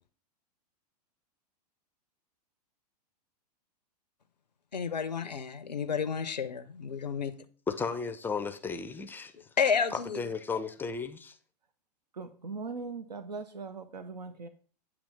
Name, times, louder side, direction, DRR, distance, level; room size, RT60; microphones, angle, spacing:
voice 1, 4.7-7.4 9.6-10.2, left 6 dB, 85° left, 0.5 m, -31 dB
voice 2, 7.7-9.5 9.9-11.4, left 5 dB, 10° left, 0.4 m, -35 dB
voice 3, 12.1-14.5, right 4 dB, 80° right, 0.6 m, -40 dB
8.5 x 2.9 x 5.5 m
figure-of-eight pair, 100°, 21 cm